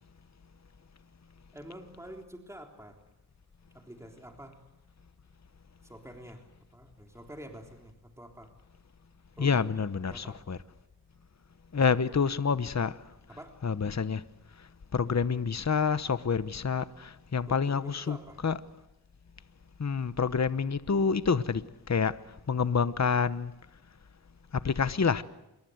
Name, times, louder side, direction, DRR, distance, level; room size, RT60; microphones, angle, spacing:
voice 1, 1.5-3.0 3.7-4.6 5.8-6.4 6.7-8.5 9.4-9.7 10.1-10.4 13.3-13.6 17.5-18.4 22.6-22.8, right 1 dB, 5° right, 3.6 m, -47 dB
voice 2, 9.4-10.6 11.7-13.0 13.6-14.2 14.9-18.2 18.4-18.5 19.8-21.6 21.9-22.2 22.5-23.5 24.5-25.2, left 5 dB, 45° left, 1.0 m, -27 dB
27.5 x 22.5 x 8.0 m
wide cardioid pair, 65°, 39 cm